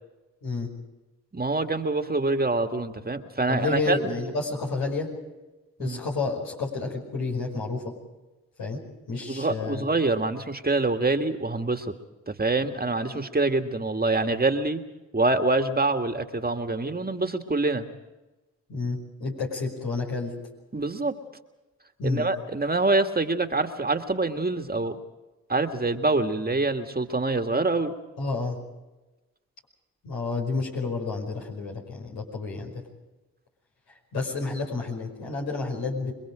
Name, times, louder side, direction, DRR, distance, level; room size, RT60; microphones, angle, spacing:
voice 1, 1.3-4.0 5.8-6.0 9.3-11.9 12.3-14.8 15.1-17.9 20.7-21.2 22.0-25.0 25.5-27.9, right 2 dB, 25° right, 6 dB, 2.0 m, -25 dB
voice 2, 3.5-5.1 5.8-7.9 8.6-8.8 9.1-9.8 13.1-13.2 18.7-20.3 22.0-22.3 28.2-28.6 30.0-32.7 34.1-36.1, left 3 dB, 80° left, -1 dB, 5.4 m, -30 dB
27.5 x 22.0 x 5.1 m, 1.1 s
hypercardioid pair, 40°, 36 cm